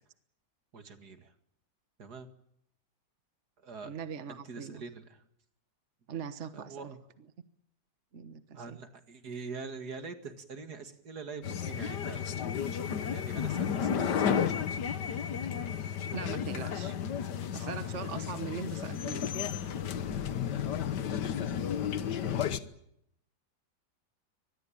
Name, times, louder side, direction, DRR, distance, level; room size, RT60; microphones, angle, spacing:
voice 1, 0.7-1.3 2.0-2.3 3.6-3.9 4.3-5.2 6.5-7.0 8.5-12.2 13.1-14.5, right 4 dB, 70° right, 8 dB, 2.6 m, -44 dB
voice 2, 3.8-4.8 6.1-7.0 8.1-8.8 16.1-16.9 17.5-19.3, right 7 dB, 45° right, 11 dB, 1.5 m, -41 dB
sound 1, 11.4-22.6, left 8 dB, 80° left, 1.8 m, -32 dB
24.5 x 21.0 x 8.8 m, 0.74 s
omnidirectional pair, 1.8 m